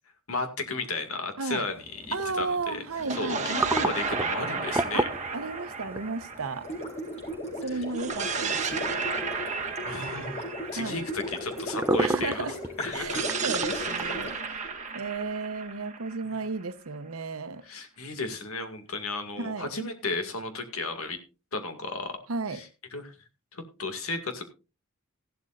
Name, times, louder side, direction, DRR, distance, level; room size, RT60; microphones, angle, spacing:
voice 1, 0.3-2.8 3.1-5.0 7.7-7.8 9.8-12.5 12.8-13.2 13.7-14.1 14.5-14.8 16.2-16.4 17.6-21.2 21.5-22.2 22.5-23.1 23.5-24.4, left 3 dB, 75° left, 2.1 m, -34 dB
voice 2, 1.4-1.7 2.1-3.5 4.9-6.7 7.6-9.0 10.8-11.0 12.0-12.6 12.9-14.4 14.9-17.6 19.4-19.7 22.3-22.6, right 4 dB, 80° right, 1.0 m, -33 dB
sound 1, 1.7-14.3, right 2 dB, 10° right, 0.5 m, -35 dB
sound 2, 2.9-7.3 7.9-11.9 12.9-16.7, right 4 dB, 35° right, 1.6 m, -33 dB
Gurgling, 6.6-15.0, left 1 dB, 30° left, 3.9 m, -37 dB
15.5 x 12.0 x 2.5 m
head